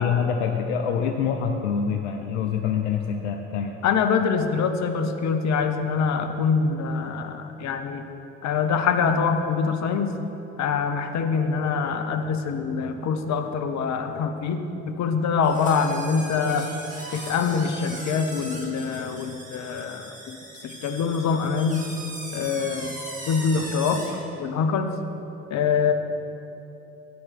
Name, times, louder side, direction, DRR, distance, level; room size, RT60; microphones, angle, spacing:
voice 1, 0.0-3.8, left 7 dB, 80° left, 4 dB, 0.5 m, -25 dB
voice 2, 3.8-8.1 8.4-10.1 10.6-16.7 17.1-20.4 20.6-21.9 22.3-23.0 23.3-24.0 24.4-25.0 25.5-25.9, left 5 dB, 55° left, 6 dB, 0.8 m, -24 dB
sound 1, 15.4-24.2, right 1 dB, 20° right, 2.0 m, -39 dB
11.0 x 4.3 x 6.6 m, 3.0 s
hypercardioid pair, 45°, 34 cm